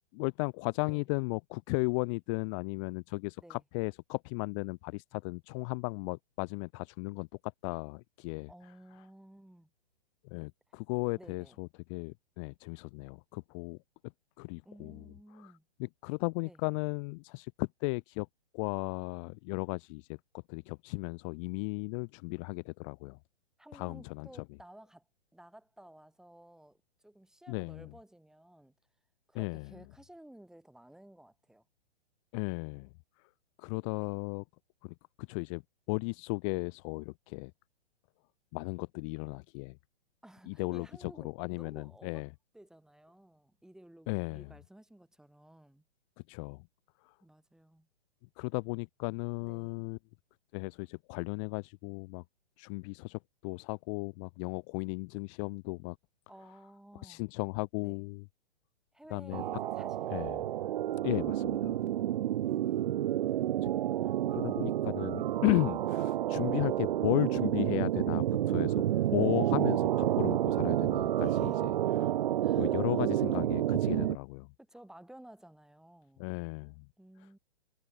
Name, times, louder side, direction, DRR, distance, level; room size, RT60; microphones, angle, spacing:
voice 1, 0.1-8.5 10.2-13.8 14.4-15.0 15.4-15.5 15.8-18.3 18.5-20.2 20.5-23.2 23.7-24.3 27.5-27.9 29.3-29.7 32.3-32.9 33.6-34.4 34.8-35.6 35.9-37.5 38.5-39.8 40.5-42.3 44.1-44.5 46.3-46.6 48.4-50.0 50.5-52.2 52.6-56.0 57.0-58.2 59.1-59.4 60.1-60.4 61.0-61.8 64.0-68.8 69.1-72.1 72.6-74.5 76.2-76.8, left 32 dB, 30° left, 1.1 m, -35 dB
voice 2, 8.5-9.7 10.7-10.8 11.2-11.6 14.6-15.7 16.4-16.6 23.6-25.1 25.3-26.8 27.0-28.7 29.3-31.6 34.0-34.2 40.2-42.3 42.5-45.8 47.2-47.9 49.4-49.8 56.3-57.2 57.8-58.0 58.9-60.4 62.0-62.9 71.2-71.8 72.4-72.8 74.6-76.3 77.0-77.4, right 1 dB, ahead, 5.2 m, -55 dB
sound 1, 59.3-74.2, right 12 dB, 50° right, 0.6 m, -30 dB
hypercardioid pair, 125°, 32 cm